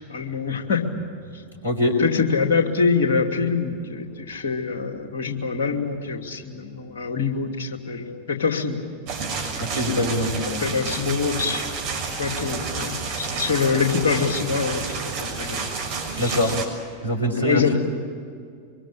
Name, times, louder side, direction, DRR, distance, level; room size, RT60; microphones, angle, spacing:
voice 1, 0.1-0.8 2.0-8.8 10.6-11.7 12.1-15.7 16.1-16.5 17.4-17.8, left 5 dB, 60° left, 4 dB, 2.7 m, -25 dB
voice 2, 1.6-2.0 9.6-10.6 16.2-16.5 17.0-17.8, left 1 dB, 90° right, 2 dB, 4.1 m, -23 dB
sound 1, 9.1-16.6, right 4 dB, 45° right, 6.4 m, -30 dB
25.0 x 23.0 x 8.6 m, 2.3 s
figure-of-eight pair, 90°, 0 cm